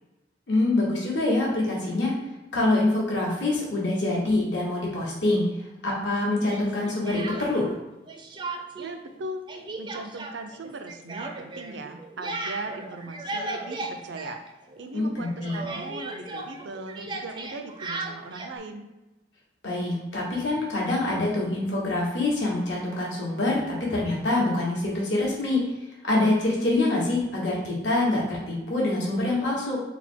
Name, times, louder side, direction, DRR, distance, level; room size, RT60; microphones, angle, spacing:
voice 1, 0.5-2.1 2.5-7.7 14.9-15.7 19.6-25.7 26.0-29.8, left 2 dB, 80° left, -4 dB, 1.4 m, -25 dB
Speech, 6.4-7.8 8.1-8.9 9.2-14.9 15.2-18.6, right 3 dB, 25° right, 0.4 m, -36 dB
voice 2, 8.7-9.4 9.8-14.4 14.8-18.9, right 2 dB, 85° right, 6 dB, 0.5 m, -38 dB
4.0 x 2.2 x 4.4 m, 1.0 s
head